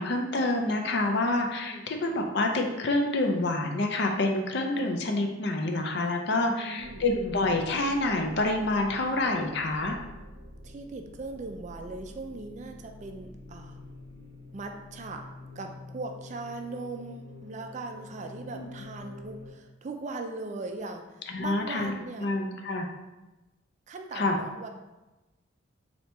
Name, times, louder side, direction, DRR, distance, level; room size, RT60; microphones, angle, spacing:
voice 1, 0.0-10.0 18.5-18.7 21.3-21.9 22.2-22.9 24.1-24.4, left 2 dB, 55° left, 3 dB, 0.5 m, -27 dB
voice 2, 6.5-7.1 10.6-13.8 14.5-15.3 15.6-22.3 23.9-24.7, right 3 dB, 35° right, 4 dB, 0.3 m, -39 dB
sound 1, 6.8-19.5, left 2 dB, 20° left, 1.1 m, -47 dB
4.3 x 2.8 x 3.3 m, 1.1 s
head